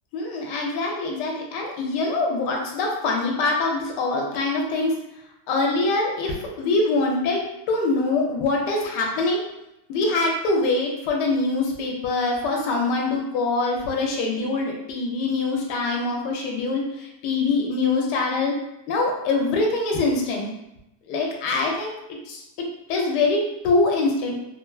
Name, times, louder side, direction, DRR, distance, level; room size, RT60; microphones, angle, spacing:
voice 1, 0.1-4.9 5.5-7.4 7.7-9.4 9.9-18.5 18.9-20.4 21.1-21.9 22.3-22.4 22.9-24.4, left 3 dB, 85° left, 0 dB, 1.2 m, -24 dB
3.3 x 2.2 x 2.3 m, 0.87 s
omnidirectional pair, 1.8 m